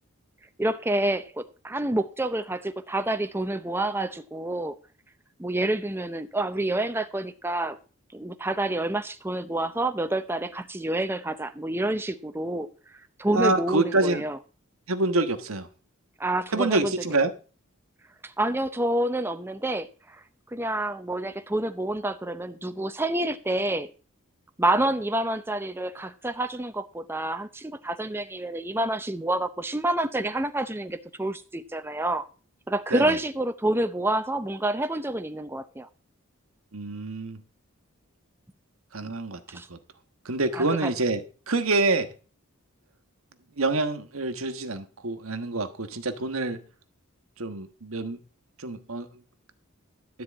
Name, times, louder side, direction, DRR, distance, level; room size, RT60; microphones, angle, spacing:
voice 1, 0.6-4.8 5.4-7.8 8.1-12.7 13.2-14.4 16.2-16.9 18.2-20.2 20.5-23.9 24.6-32.3 32.7-35.9 39.5-39.7 40.5-40.9, right 1 dB, 10° right, 0.6 m, -28 dB
voice 2, 13.3-14.3 14.9-15.7 16.5-17.3 32.9-33.2 36.7-37.4 38.9-39.8 40.2-42.1 43.6-46.6 47.4-48.2 48.6-49.1, right 2 dB, 80° right, 1.4 m, -26 dB
13.0 x 4.6 x 8.5 m
head